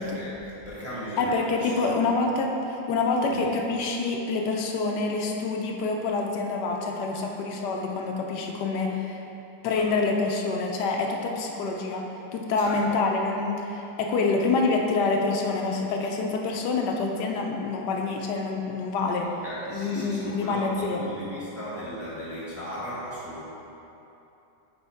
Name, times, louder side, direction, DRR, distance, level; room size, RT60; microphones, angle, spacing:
voice 1, 0.0-2.0 3.2-3.5 9.7-9.9 12.6-13.0 19.2-23.5, equal, 10° right, -8 dB, 1.2 m, -37 dB
voice 2, 1.2-9.2 9.6-19.3 19.7-21.1, left 3 dB, 80° left, 1 dB, 1.3 m, -27 dB
6.9 x 4.2 x 4.3 m, 3.0 s
omnidirectional pair, 1.8 m